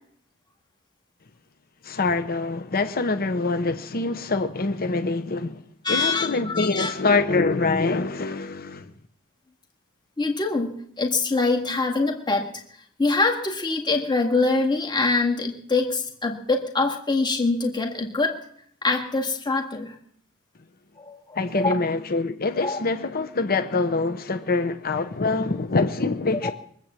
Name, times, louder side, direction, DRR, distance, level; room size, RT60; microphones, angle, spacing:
voice 1, 1.8-5.6 5.9-8.9 21.4-26.5, left 3 dB, 45° left, 0.8 m, -25 dB
voice 2, 5.8-6.9 10.2-12.5 13.0-18.4 18.8-19.9 21.0-21.8 22.6-22.8 26.4-26.5, left 3 dB, 20° left, 1.9 m, -24 dB
22.5 x 8.3 x 7.5 m
head